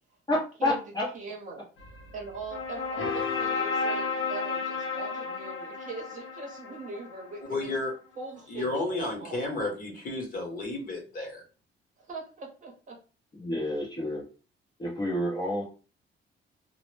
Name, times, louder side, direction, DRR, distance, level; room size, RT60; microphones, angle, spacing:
voice 1, 0.3-1.1 13.3-14.2 14.8-15.6, left 1 dB, 20° left, -4 dB, 0.6 m, -29 dB
voice 2, 1.1-1.7 2.1-7.8 8.2-9.6 12.0-13.0, right 3 dB, 40° right, -1 dB, 0.8 m, -41 dB
sound 1, 1.8-7.7, left 4 dB, 85° left, 0.6 m, -33 dB
voice 3, 7.5-7.9 8.5-11.4, left 2 dB, 40° left, -1 dB, 0.9 m, -32 dB
2.0 x 2.0 x 3.1 m, 0.35 s
cardioid pair, 140°, 21 cm